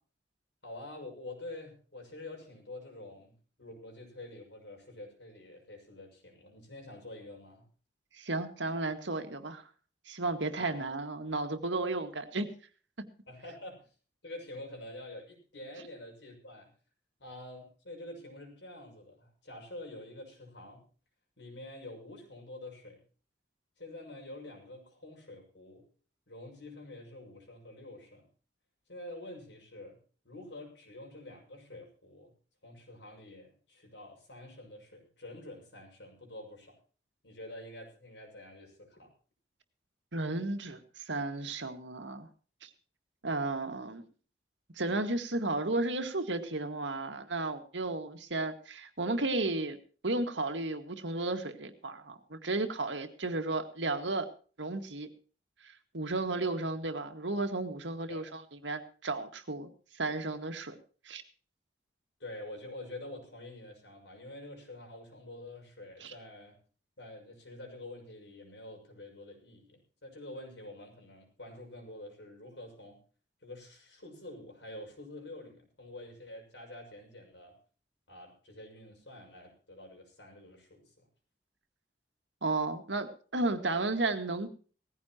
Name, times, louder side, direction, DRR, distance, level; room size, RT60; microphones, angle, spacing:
voice 1, 0.6-7.7 10.6-10.8 13.3-13.9 14.2-16.7 17.2-20.9 21.4-23.0 23.8-25.9 26.3-28.3 28.9-32.3 32.6-36.8 37.2-39.1 58.1-58.3 62.2-66.6 67.0-73.0 73.4-77.6 78.1-81.1, left 1 dB, 80° left, 1 dB, 6.4 m, -47 dB
voice 2, 8.1-9.6 10.1-12.5 40.1-42.3 42.6-42.7 43.2-44.0 44.8-49.8 50.0-54.3 54.6-55.1 55.6-60.8 61.1-61.2 66.0-66.1 82.4-84.5, right 2 dB, 90° right, 7 dB, 1.9 m, -33 dB
19.0 x 15.0 x 3.0 m, 0.39 s
head